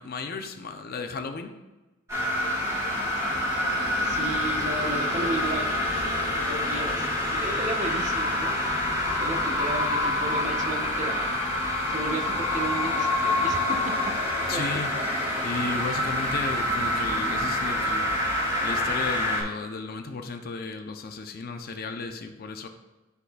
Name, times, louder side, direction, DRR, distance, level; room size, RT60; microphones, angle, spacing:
voice 1, 0.0-1.5 14.5-15.0 15.4-18.1 18.6-22.7, left 4 dB, 45° left, 6 dB, 0.5 m, -34 dB
sound 1, 2.1-19.4, left 1 dB, 15° right, 2.2 m, -27 dB
voice 2, 4.0-5.6 5.9-6.0 6.5-8.5 8.9-11.3 11.9-14.1 14.5-14.6, right 2 dB, 35° right, 2 dB, 0.8 m, -34 dB
11.5 x 4.1 x 2.3 m, 1.1 s
head